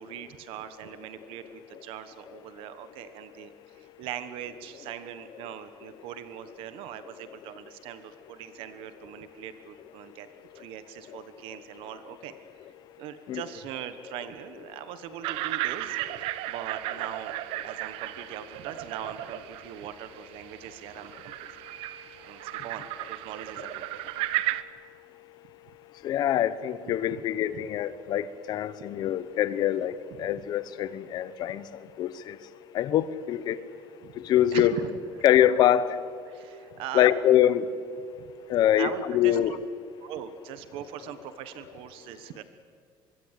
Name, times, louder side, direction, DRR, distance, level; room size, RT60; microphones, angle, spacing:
voice 1, 0.0-10.3 10.5-12.4 13.0-17.4 17.6-21.3 22.2-24.3 27.1-27.2 30.2-30.3 34.0-34.1 34.5-34.9 36.3-37.1 38.2-38.3 38.8-39.6 40.0-42.4, right 10 dB, 70° right, 11 dB, 1.3 m, -41 dB
sound 1, 15.2-24.6, right 16 dB, 85° right, 0.9 m, -35 dB
voice 2, 26.0-31.7 32.0-32.4 32.7-33.6 34.2-34.8 35.2-36.0 36.9-37.7 38.5-39.6, left 11 dB, 45° left, 15 dB, 1.0 m, -24 dB
24.5 x 23.5 x 8.3 m, 2.2 s
cardioid pair, 180°, 9 cm